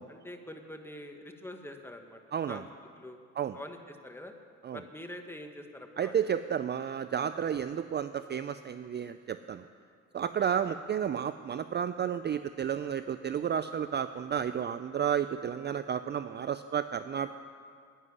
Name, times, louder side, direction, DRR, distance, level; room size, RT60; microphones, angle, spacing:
voice 1, 0.1-2.2 2.5-2.6 3.0-3.2 3.5-4.3 4.7-6.3 10.6-10.8 14.9-15.2, left 1 dB, 10° left, 5 dB, 1.4 m, -45 dB
voice 2, 2.3-2.6 3.4-3.6 4.6-4.8 6.0-9.6 10.1-17.3, right 8 dB, 35° right, 11 dB, 0.4 m, -32 dB
11.0 x 9.2 x 9.9 m, 2.3 s
cardioid pair, 90°, 30 cm